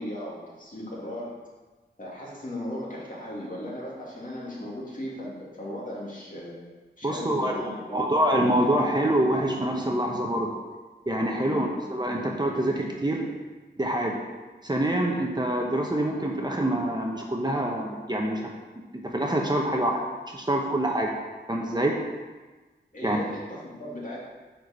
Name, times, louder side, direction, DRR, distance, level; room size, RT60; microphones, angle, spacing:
voice 1, 0.0-1.3 2.0-6.5 7.0-8.1 11.4-11.7 22.9-24.3, left 1 dB, 45° left, -5 dB, 2.8 m, -37 dB
voice 2, 7.0-7.6 7.9-10.5 11.1-13.3 13.8-14.2 14.6-18.5 19.0-20.0 20.3-21.1 21.5-22.0 23.0-23.2, right 1 dB, 20° right, 0 dB, 1.1 m, -25 dB
9.2 x 4.6 x 6.8 m, 1.3 s
wide cardioid pair, 100°, 19 cm